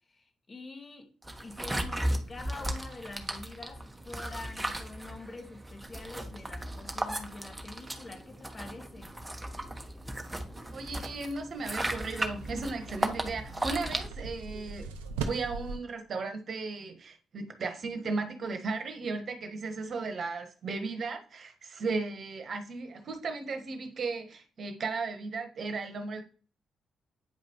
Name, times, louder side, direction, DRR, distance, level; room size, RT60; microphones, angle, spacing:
voice 1, 0.1-1.1 1.4-9.1, left 3 dB, 35° left, 4 dB, 1.9 m, -46 dB
sound 1, 1.2-14.1, right 1 dB, 15° right, 1.3 m, -36 dB
voice 2, 10.7-14.9 15.2-26.2, right 3 dB, 55° right, 6 dB, 1.2 m, -35 dB
sound 2, 12.4-15.8, right 4 dB, 90° right, 0.5 m, -40 dB
9.0 x 5.1 x 3.0 m, 0.40 s
hypercardioid pair, 40°, 0 cm